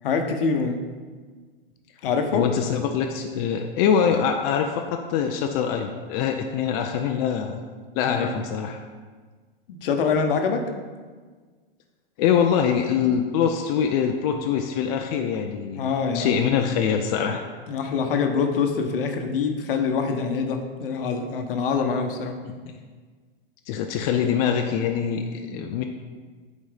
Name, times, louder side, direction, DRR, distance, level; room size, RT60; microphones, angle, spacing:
voice 1, 0.0-0.8 2.0-2.5 8.1-8.3 9.7-10.7 15.8-16.4 17.7-22.3 25.5-25.7, left 5 dB, 65° left, 5 dB, 0.9 m, -25 dB
voice 2, 2.3-7.6 7.9-8.8 12.2-17.4 22.4-22.8 23.7-25.8, left 7 dB, 45° left, 4 dB, 0.5 m, -24 dB
8.7 x 4.2 x 3.4 m, 1.5 s
hypercardioid pair, 110°, 29 cm